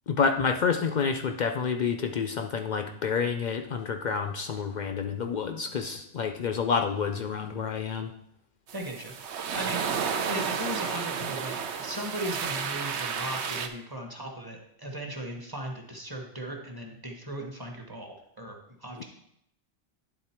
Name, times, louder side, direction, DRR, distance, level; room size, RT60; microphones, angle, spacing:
voice 1, 0.1-8.1, left 6 dB, 65° left, 6 dB, 0.4 m, -28 dB
voice 2, 8.7-19.0, right 1 dB, 20° right, 2 dB, 1.0 m, -38 dB
sound 1, 8.7-13.7, right 6 dB, 70° right, 0.9 m, -32 dB
10.5 x 3.8 x 4.4 m, 0.76 s
omnidirectional pair, 1.2 m